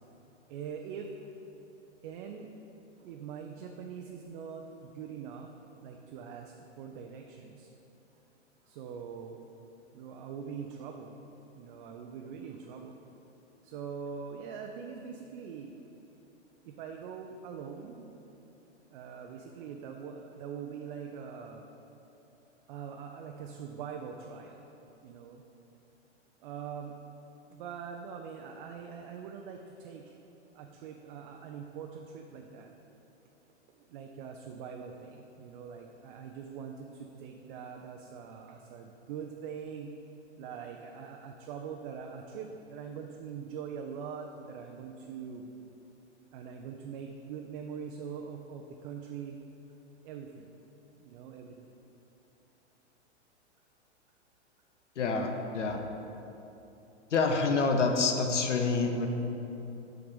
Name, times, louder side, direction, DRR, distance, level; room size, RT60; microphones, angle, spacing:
voice 1, 0.5-1.1 2.0-2.5 3.0-5.5 5.8-7.7 8.6-9.4 9.9-11.2 11.6-13.0 13.6-15.7 16.6-18.1 18.9-21.6 22.7-24.7 25.0-25.4 26.4-27.0 27.5-30.2 30.5-32.7 33.7-39.9 40.4-45.5 46.3-49.4 50.0-50.5 51.0-51.7, right 6 dB, 45° right, 2 dB, 0.5 m, -43 dB
voice 2, 55.0-55.8 57.1-59.1, left 4 dB, 85° left, 4 dB, 0.8 m, -27 dB
6.0 x 4.8 x 5.3 m, 3.0 s
hypercardioid pair, 110°, 35 cm